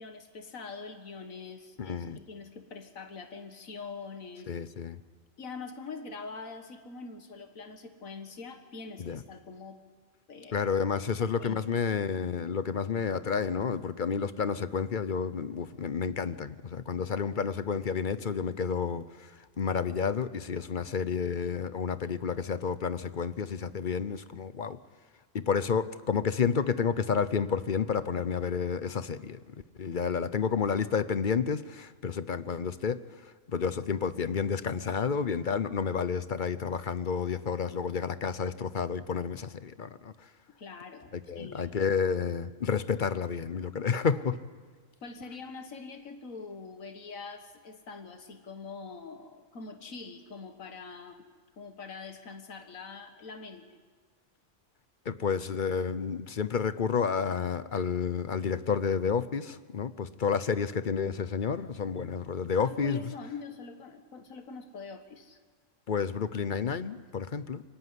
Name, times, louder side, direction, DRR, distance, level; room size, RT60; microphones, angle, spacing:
voice 1, 0.0-4.5 5.4-9.8 10.3-10.7 11.2-11.7 40.6-41.7 45.0-51.3 51.6-53.8 62.6-65.4, left 4 dB, 90° left, 7 dB, 1.9 m, -44 dB
voice 2, 1.8-2.2 4.5-5.0 9.0-9.2 10.5-24.8 25.3-33.0 33.5-40.3 41.1-44.4 55.0-63.1 65.9-67.6, left 6 dB, 45° left, 14 dB, 0.8 m, -30 dB
23.5 x 17.5 x 10.0 m, 1.5 s
omnidirectional pair, 1.4 m